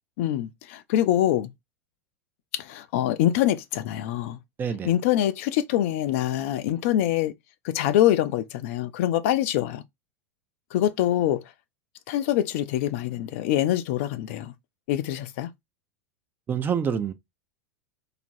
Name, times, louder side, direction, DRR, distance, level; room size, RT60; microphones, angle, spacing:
voice 1, 0.2-1.5 2.5-4.4 4.8-7.3 7.6-9.8 10.7-11.4 12.1-14.5 14.9-15.5, left 12 dB, 55° left, 0.4 m, -24 dB
voice 2, 4.6-4.9 16.5-17.1, right 7 dB, 25° right, 0.4 m, -26 dB
2.9 x 2.4 x 2.5 m
figure-of-eight pair, 85°, 8 cm